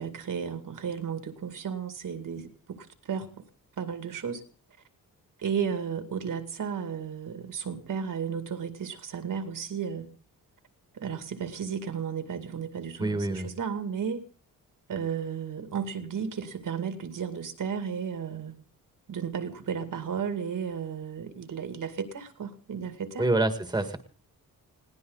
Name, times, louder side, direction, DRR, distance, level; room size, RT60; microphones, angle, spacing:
voice 1, 0.0-3.4 3.8-4.4 5.4-10.1 10.9-14.2 14.9-18.5 19.1-23.3, right 7 dB, 65° right, 2.4 m, -34 dB
voice 2, 13.0-13.5 23.2-24.0, right 2 dB, 10° right, 1.8 m, -26 dB
21.0 x 17.5 x 4.0 m
wide cardioid pair, 120°, 35 cm